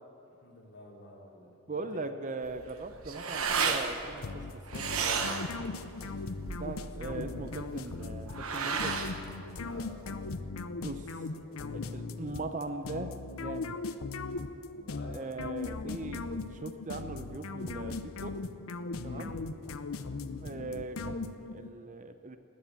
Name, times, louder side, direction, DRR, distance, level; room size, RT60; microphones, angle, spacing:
voice 1, 0.4-2.1 7.0-7.4 9.6-10.3 11.1-11.8 14.7-15.2 19.0-19.4, left 2 dB, 50° left, -2 dB, 3.1 m, -51 dB
voice 2, 1.7-5.6 6.6-9.0 10.8-11.5 11.7-13.8 15.1-18.3 19.0-19.3 20.4-22.4, right 3 dB, 35° right, 9 dB, 0.6 m, -40 dB
sound 1, 2.4-10.3, right 5 dB, 75° right, 1.1 m, -34 dB
sound 2, 4.2-21.7, left 3 dB, 75° left, 0.7 m, -39 dB
19.0 x 7.3 x 8.9 m, 2.7 s
head